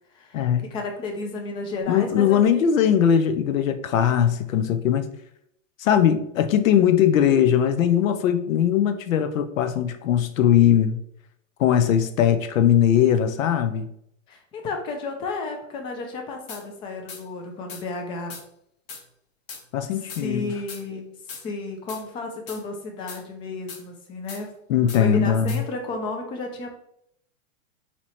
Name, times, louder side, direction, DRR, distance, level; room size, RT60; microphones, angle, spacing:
voice 1, 0.1-2.7 14.3-18.3 19.9-21.1 21.4-24.5 25.0-26.7, left 3 dB, 15° left, 3 dB, 0.3 m, -32 dB
voice 2, 1.9-5.1 5.8-11.0 11.6-13.9 19.7-20.5 24.7-25.6, left 9 dB, 90° left, 9 dB, 0.6 m, -20 dB
sound 1, 16.5-16.6 17.1-17.2 17.7-17.8 18.3-18.4 18.9-19.0 19.5-19.6 20.1-20.2 20.7-20.8 21.3-21.4 21.9-22.0 22.5-22.6 23.1-23.2 23.7-23.8 24.3-24.4 24.9-25.0 25.5-25.6, left 5 dB, 45° left, 1.0 m, -39 dB
4.2 x 2.9 x 3.0 m, 0.73 s
hypercardioid pair, 135°, 39 cm